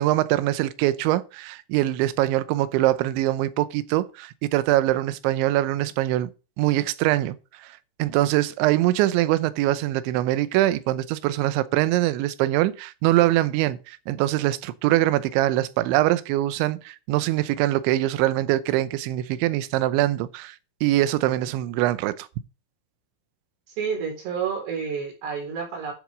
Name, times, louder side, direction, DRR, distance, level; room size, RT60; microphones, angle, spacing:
voice 1, 0.0-6.3 6.6-7.4 7.6-7.7 8.0-20.6 20.8-22.3, right 15 dB, 80° right, 2.9 m, -23 dB
voice 2, 23.7-25.9, right 6 dB, 55° right, 5.8 m, -29 dB
10.5 x 7.0 x 5.0 m
omnidirectional pair, 5.8 m